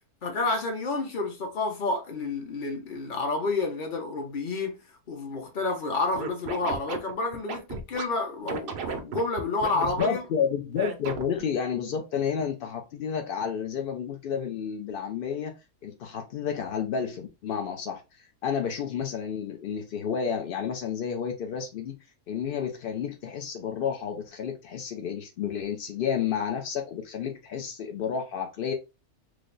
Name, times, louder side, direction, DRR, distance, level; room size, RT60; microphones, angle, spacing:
voice 1, 0.2-4.8 5.1-10.2, left 3 dB, 45° left, 0.8 m, -29 dB
Scratching (performance technique), 6.1-8.0 8.5-10.1 10.8-11.4, right 6 dB, 70° right, 0.5 m, -34 dB
voice 2, 9.7-15.5 15.8-21.9 22.3-28.7, left 7 dB, 70° left, 0.5 m, -31 dB
3.3 x 2.0 x 3.7 m
omnidirectional pair, 1.6 m